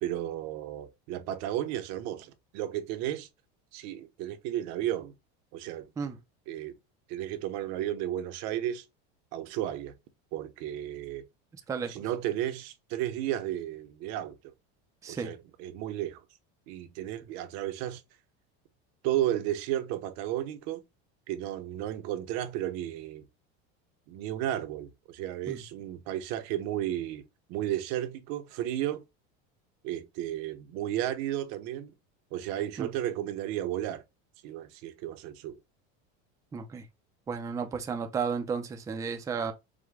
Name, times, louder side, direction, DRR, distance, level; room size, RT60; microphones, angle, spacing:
voice 1, 0.0-3.3 3.7-5.1 5.5-5.9 6.5-6.7 7.1-8.8 9.3-9.9 10.3-11.2 11.9-14.4 15.1-16.2 16.7-18.0 19.0-20.8 21.3-23.2 24.1-27.2 27.5-29.0 29.8-31.9 32.3-34.0 34.4-35.6, right 12 dB, 55° right, 0.7 m, -33 dB
voice 2, 36.5-36.8 37.3-39.5, right 6 dB, 10° right, 0.4 m, -33 dB
5.0 x 2.1 x 3.4 m
cardioid pair, 155°, 32 cm